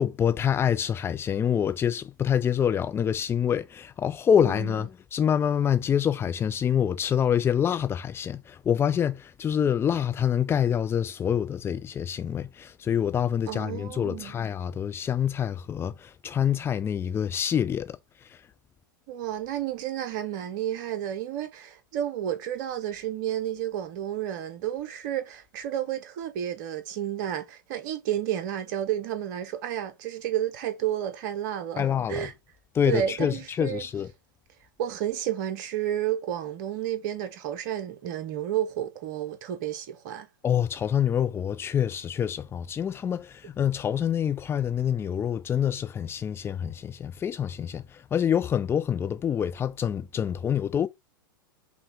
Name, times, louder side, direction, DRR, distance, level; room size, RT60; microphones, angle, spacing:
voice 1, 0.0-18.0 18.3-18.4 31.8-32.3 32.7-34.1 40.4-50.9, left 8 dB, 20° left, 0.5 m, -26 dB
voice 2, 4.4-4.8 13.5-14.4 19.1-32.3 32.8-33.8 34.8-40.3, right 11 dB, 55° right, 1.1 m, -31 dB
5.6 x 2.4 x 3.5 m
figure-of-eight pair, 95°, 12 cm